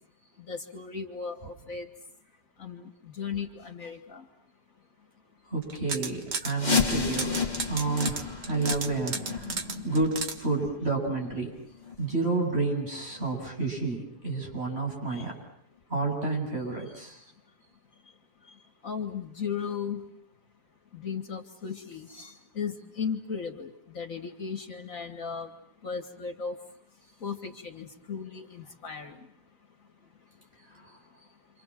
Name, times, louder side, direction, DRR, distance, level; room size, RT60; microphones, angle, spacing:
voice 1, 0.4-1.9 2.6-4.3 15.1-15.2 18.8-20.0 20.9-25.5 25.8-26.6 27.2-29.3, left 6 dB, 55° left, 6 dB, 2.4 m, -36 dB
voice 2, 5.5-11.5 12.0-15.3 15.9-17.2 30.8-30.9, right 3 dB, 40° right, 0 dB, 8.4 m, -30 dB
sound 1, 5.6-6.5 6.9-10.4, right 5 dB, 85° right, 2.4 m, -33 dB
sound 2, 6.6-12.1 12.5-12.6 13.1-13.2 13.9-14.0 14.5-14.6, left 5 dB, 25° left, 2.1 m, -32 dB
29.0 x 26.5 x 7.6 m, 0.67 s
omnidirectional pair, 1.7 m